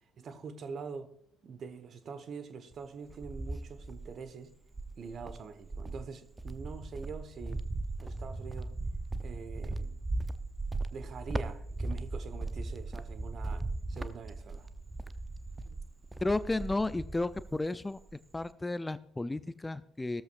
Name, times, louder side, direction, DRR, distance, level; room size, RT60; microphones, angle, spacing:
voice 1, 0.2-1.1 1.4-4.5 5.0-7.6 8.0-8.7 9.2-10.0 10.9-14.7 15.6-15.8, right 5 dB, 45° right, 11 dB, 1.3 m, -44 dB
Cricket, 2.7-4.2 4.7-17.7 18.0-18.5, right 2 dB, 15° right, 0.8 m, -38 dB
voice 2, 16.2-18.0 18.3-20.2, left 2 dB, 15° left, 15 dB, 0.5 m, -33 dB
16.0 x 13.5 x 2.6 m, 0.68 s
figure-of-eight pair, 50°, 0 cm